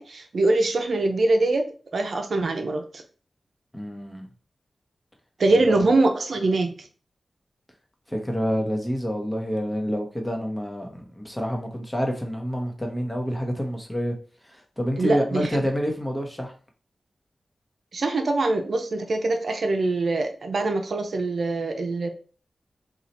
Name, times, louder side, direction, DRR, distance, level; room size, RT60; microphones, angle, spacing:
voice 1, 0.0-1.7 1.9-3.0 5.4-6.9 15.0-15.6 17.9-22.1, right 2 dB, 75° right, 5 dB, 0.5 m, -23 dB
voice 2, 3.7-4.3 5.5-5.9 8.1-14.1 14.4-16.5, equal, 10° left, 2 dB, 0.9 m, -28 dB
2.8 x 2.4 x 4.2 m, 0.39 s
cardioid pair, 60°, 0 cm